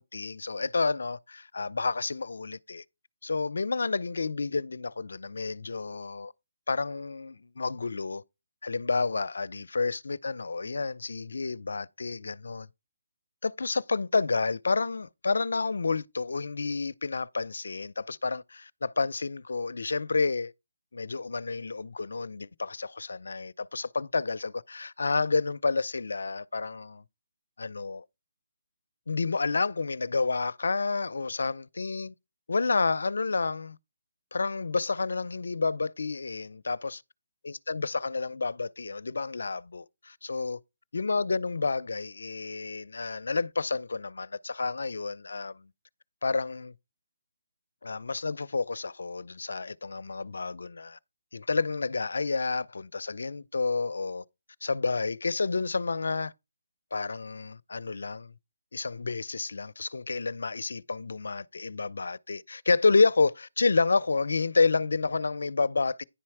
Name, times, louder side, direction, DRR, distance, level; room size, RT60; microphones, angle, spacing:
voice 1, 0.0-2.8 3.2-6.3 6.7-8.2 8.6-12.7 13.4-20.5 20.9-27.0 27.6-28.0 29.1-32.1 32.5-33.8 34.3-37.0 37.4-40.6 40.9-45.7 46.2-46.7 47.8-51.0 51.3-54.2 54.6-56.3 56.9-58.3 58.7-66.0, left 4 dB, 75° left, 0.5 m, -30 dB
10.0 x 4.2 x 4.7 m
figure-of-eight pair, 150°, 0 cm